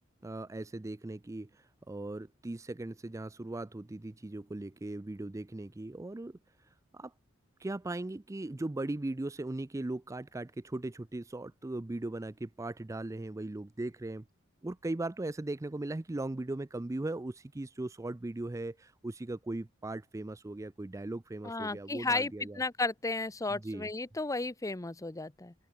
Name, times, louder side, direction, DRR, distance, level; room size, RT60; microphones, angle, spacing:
voice 1, 0.2-6.4 6.9-7.1 7.6-14.3 14.6-22.6 23.5-23.9, right 2 dB, 15° right, 0.4 m, -38 dB
voice 2, 21.4-25.5, left 3 dB, 15° left, 0.7 m, -34 dB
open air
head